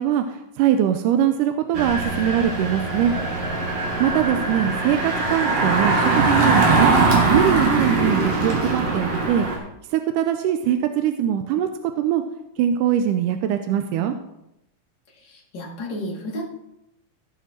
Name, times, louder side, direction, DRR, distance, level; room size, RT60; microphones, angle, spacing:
voice 1, 0.0-3.1 4.0-6.9 7.3-9.5 9.9-11.7 12.0-12.2 12.6-14.2, right 10 dB, 90° right, 7 dB, 2.2 m, -22 dB
Engine, 1.7-9.6, right 3 dB, 55° right, 2.7 m, -21 dB
voice 2, 15.1-16.4, left 1 dB, 35° left, -3 dB, 2.7 m, -32 dB
16.5 x 5.8 x 4.5 m, 0.85 s
omnidirectional pair, 3.7 m